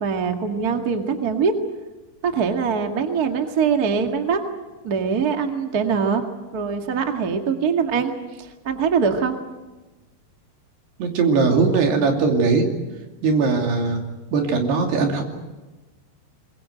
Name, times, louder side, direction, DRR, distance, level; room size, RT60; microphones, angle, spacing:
voice 1, 0.0-1.5 2.2-4.4 4.8-6.2 6.5-8.1 8.4-9.4, right 6 dB, 45° right, 4 dB, 1.2 m, -22 dB
voice 2, 11.0-12.7 13.2-14.0 14.3-15.2, right 4 dB, 65° right, 2 dB, 4.7 m, -19 dB
23.0 x 22.5 x 7.9 m, 1.1 s
omnidirectional pair, 5.1 m